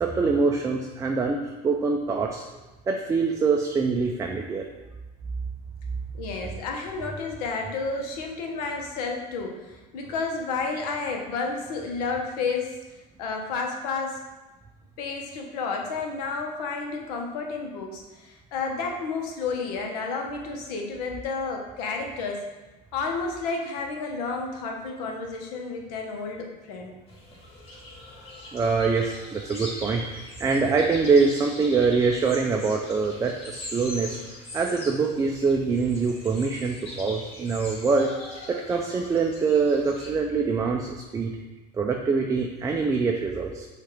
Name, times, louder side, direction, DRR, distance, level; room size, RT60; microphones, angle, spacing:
voice 1, 0.0-2.4 2.9-4.7 28.5-34.2 34.5-38.1 38.5-41.3 41.7-43.7, right 4 dB, 15° right, 2 dB, 0.3 m, -24 dB
voice 2, 6.1-12.8 13.2-14.2 15.0-22.4 22.9-27.0, left 4 dB, 75° left, 2 dB, 0.9 m, -31 dB
sound 1, 27.1-40.1, left 1 dB, 30° left, 1.5 m, -41 dB
4.6 x 2.5 x 4.5 m, 1.2 s
supercardioid pair, 100°, 20 cm